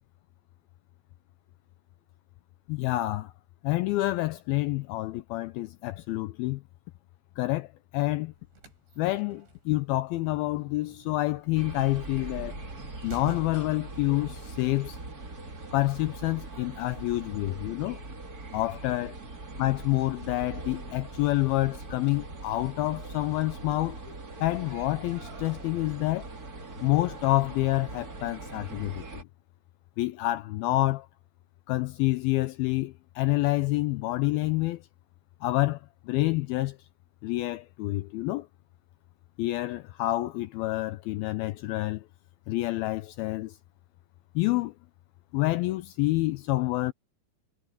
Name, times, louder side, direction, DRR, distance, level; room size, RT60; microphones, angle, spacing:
voice 1, 2.7-3.3 3.6-6.6 7.4-8.3 9.0-12.5 13.0-15.0 15.7-18.0 18.5-19.2 19.6-24.0 24.4-26.3 26.8-29.2 30.0-31.1 31.7-34.8 35.4-36.8 37.2-38.5 39.4-42.1 42.5-43.6 44.4-44.7 45.3-46.9, left 18 dB, 85° left, 2.2 m, -28 dB
sound 1, 8.3-13.9, right 5 dB, 90° right, 8.1 m, -48 dB
sound 2, 11.5-29.2, right 2 dB, 25° right, 2.3 m, -41 dB
omnidirectional pair, 4.9 m